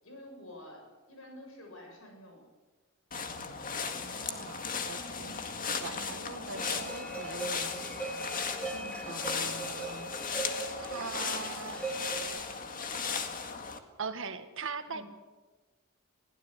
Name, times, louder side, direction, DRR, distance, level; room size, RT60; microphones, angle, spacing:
voice 1, 0.0-2.4 5.2-5.5 8.7-9.1 10.3-12.4 14.9-15.0, left 1 dB, 70° left, 2 dB, 7.1 m, -49 dB
sound 1, 3.1-13.8, left 5 dB, 40° left, 1.9 m, -36 dB
voice 2, 3.9-8.1 9.1-10.2 10.9-11.8 14.0-15.0, right 5 dB, 65° right, 9 dB, 1.7 m, -42 dB
sound 2, 6.6-12.3, right 3 dB, 5° left, 3.2 m, -40 dB
22.0 x 16.5 x 8.3 m, 1.2 s
head